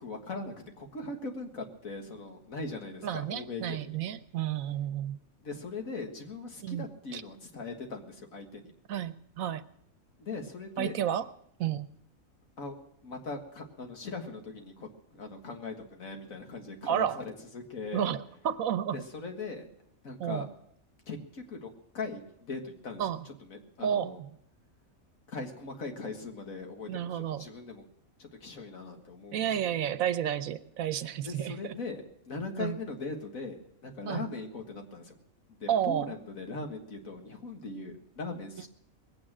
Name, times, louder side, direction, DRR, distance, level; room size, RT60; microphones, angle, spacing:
voice 1, 0.0-4.0 5.4-8.7 10.2-11.0 12.6-18.1 18.9-19.7 20.0-20.5 21.1-24.2 25.3-27.8 28.2-30.0 31.2-35.1 35.6-38.7, left 3 dB, 75° left, 3 dB, 2.2 m, -40 dB
voice 2, 3.0-5.2 6.6-6.9 7.1-7.2 8.9-9.6 10.8-11.3 11.6-11.9 16.9-17.2 17.9-19.0 20.2-20.5 23.0-23.2 23.8-24.3 26.9-27.5 29.3-31.7 32.6-32.8 34.1-34.3 35.7-36.1, right 10 dB, 80° right, 13 dB, 1.2 m, -31 dB
21.0 x 8.9 x 6.1 m, 0.73 s
omnidirectional pair, 1.4 m